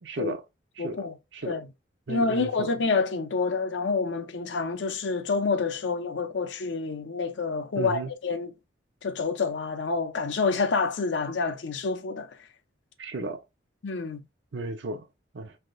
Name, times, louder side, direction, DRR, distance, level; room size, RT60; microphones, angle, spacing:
voice 1, 0.0-0.4 0.8-1.6 2.1-2.7 7.8-8.1 13.0-13.4 14.5-15.0 15.3-15.5, right 2 dB, 70° right, 0.6 m, -34 dB
voice 2, 0.8-1.1 1.4-1.7 2.1-8.5 9.0-12.3 13.8-14.2, left 4 dB, 75° left, 0.5 m, -28 dB
3.4 x 2.6 x 2.5 m
head